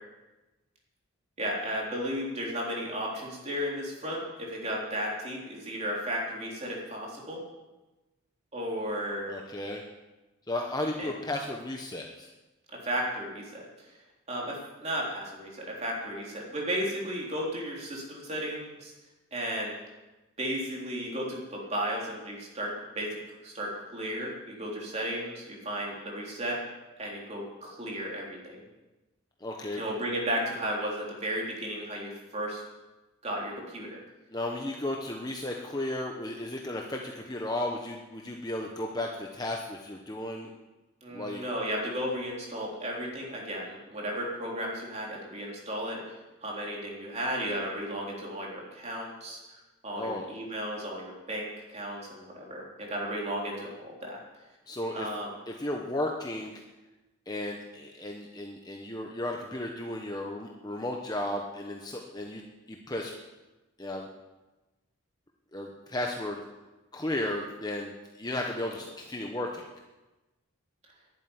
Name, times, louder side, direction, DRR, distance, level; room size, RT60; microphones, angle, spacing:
voice 1, 1.4-7.4 8.5-9.3 11.0-11.1 12.8-13.9 14.3-18.9 19.3-19.8 20.4-26.6 27.0-28.6 29.8-32.6 33.2-34.0 41.0-46.0 46.4-54.2 54.9-55.3, equal, 30° right, -3 dB, 3.6 m, -34 dB
voice 2, 9.3-9.8 10.5-12.3 29.4-29.8 34.3-40.5 41.1-41.4 50.0-50.3 54.7-55.1 55.5-56.6 57.3-62.4 62.7-63.1 63.8-64.1 65.5-66.4 66.9-69.7, left 1 dB, 20° left, 1 dB, 1.0 m, -34 dB
11.0 x 9.1 x 9.8 m, 1.1 s
head